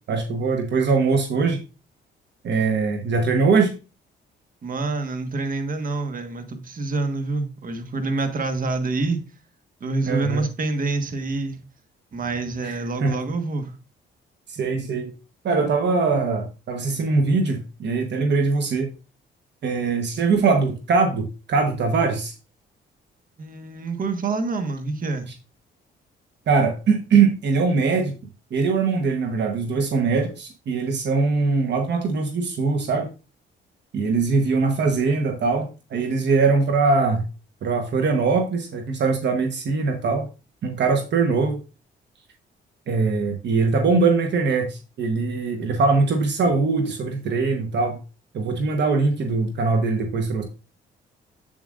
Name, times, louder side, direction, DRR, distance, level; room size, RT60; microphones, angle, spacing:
voice 1, 0.1-1.6 2.4-3.7 10.1-10.4 12.6-13.2 14.5-15.1 15.4-18.9 19.6-22.3 26.5-28.1 28.5-33.1 33.9-37.2 37.6-40.3 40.6-41.6 42.9-48.0 48.3-50.4, right 4 dB, 60° right, 1.2 m, -22 dB
voice 2, 4.6-9.2 9.8-11.6 12.1-13.7 23.4-25.3, right 3 dB, 45° right, 1.4 m, -27 dB
8.0 x 7.4 x 2.5 m
cardioid pair, 90°, 20 cm